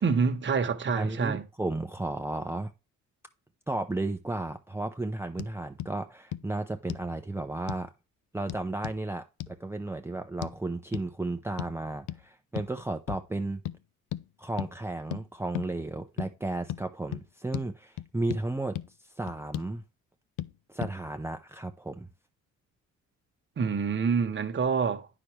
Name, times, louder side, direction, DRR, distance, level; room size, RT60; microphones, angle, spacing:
voice 1, 0.0-1.5 23.6-25.1, right 5 dB, 40° right, 1.2 m, -27 dB
voice 2, 0.9-2.7 3.7-7.9 8.3-13.6 14.4-19.8 20.7-22.1, right 2 dB, 10° right, 0.7 m, -34 dB
sound 1, 5.4-5.5 5.8-5.9 6.3-6.4 6.9-7.1 7.7-7.9 8.5-9.0 9.4-9.6 10.4-10.6 10.9-11.1 11.6-11.8 12.1-12.2 12.6-12.7 13.1-13.3 13.7-13.8 14.1-14.2 14.6-14.7 15.1-15.2 15.5-15.7 16.2-16.3 16.7-16.8 17.1-17.3 17.5-17.7 18.0-18.4 18.8-18.9 19.3-19.7 20.4-20.5 20.8-20.9, left 13 dB, 80° left, 0.5 m, -36 dB
9.7 x 6.0 x 3.3 m
cardioid pair, 90°, 30 cm